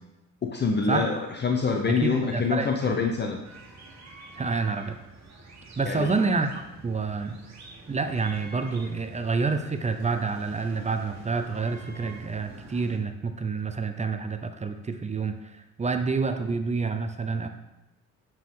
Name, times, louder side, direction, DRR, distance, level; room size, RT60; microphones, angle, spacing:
voice 1, 0.4-3.4 5.9-6.1, left 4 dB, 35° left, 3 dB, 0.7 m, -26 dB
voice 2, 1.9-2.9 4.4-5.0 5.8-6.5 6.8-7.4 7.9-17.5, right 4 dB, 25° right, 7 dB, 0.6 m, -28 dB
sound 1, 3.4-13.0, right 2 dB, 60° right, 1.5 m, -47 dB
9.0 x 4.6 x 3.7 m, 0.92 s
cardioid pair, 90°, 30 cm